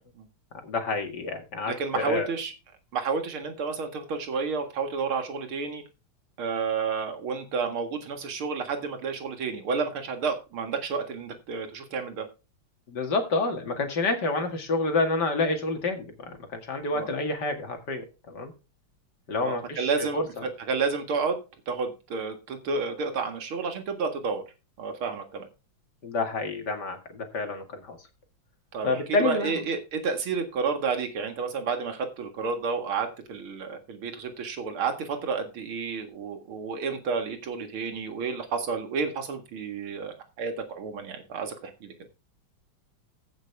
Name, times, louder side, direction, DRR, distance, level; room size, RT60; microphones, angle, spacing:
voice 1, 0.6-2.3 12.9-18.5 19.3-20.3 26.0-28.0 28.8-29.6, left 3 dB, 55° left, 5 dB, 2.6 m, -28 dB
voice 2, 1.7-2.5 2.9-5.8 6.4-12.3 16.9-17.1 19.4-24.4 24.8-25.5 28.7-41.9, right 5 dB, 85° right, 6 dB, 2.7 m, -31 dB
15.5 x 6.5 x 3.5 m, 0.30 s
omnidirectional pair, 2.3 m